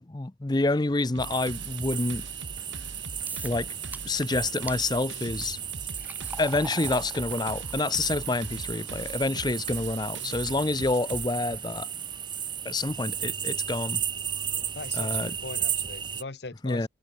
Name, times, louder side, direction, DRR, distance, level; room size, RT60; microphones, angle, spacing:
voice 1, 0.0-2.2 3.4-3.7 4.0-5.6 6.4-11.9 12.6-14.0 15.0-15.3 16.6-16.9, left 2 dB, 25° left, 0.5 m, -28 dB
sound 1, 1.2-16.2, right 8 dB, 25° right, 1.4 m, -34 dB
sound 2, 1.2-11.3, right 3 dB, 85° right, 1.0 m, -42 dB
sound 3, 3.3-3.6 3.9-4.3 4.7-4.8 5.5-12.6, right 2 dB, 10° right, 3.6 m, -46 dB
voice 2, 14.7-16.9, left 3 dB, 65° left, 1.1 m, -40 dB
head